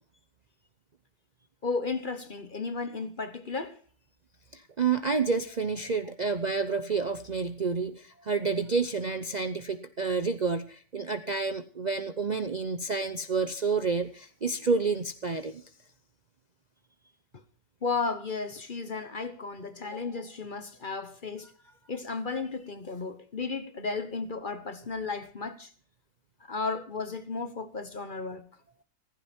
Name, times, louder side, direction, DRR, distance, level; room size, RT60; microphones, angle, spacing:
voice 1, 1.6-3.8 17.8-21.5 21.9-25.7 26.4-28.5, left 4 dB, 35° left, 1.0 m, -34 dB
voice 2, 4.5-15.6, right 4 dB, 85° right, 0.3 m, -29 dB
15.5 x 15.5 x 4.4 m
omnidirectional pair, 2.0 m